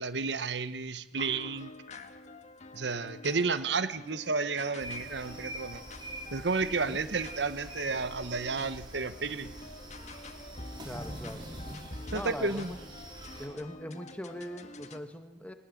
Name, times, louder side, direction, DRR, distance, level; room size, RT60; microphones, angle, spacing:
voice 1, 0.0-1.7 2.7-5.8 6.3-9.5 12.1-12.7, right 4 dB, 65° right, 13 dB, 1.0 m, -32 dB
sound 1, 1.2-15.0, left 2 dB, 40° left, 1.7 m, -47 dB
sound 2, 4.8-13.5, right 1 dB, 25° right, 4.8 m, -45 dB
voice 2, 10.8-11.5 12.1-12.8 13.4-15.5, equal, 10° left, 8 dB, 1.9 m, -41 dB
21.0 x 20.0 x 9.2 m, 0.97 s
head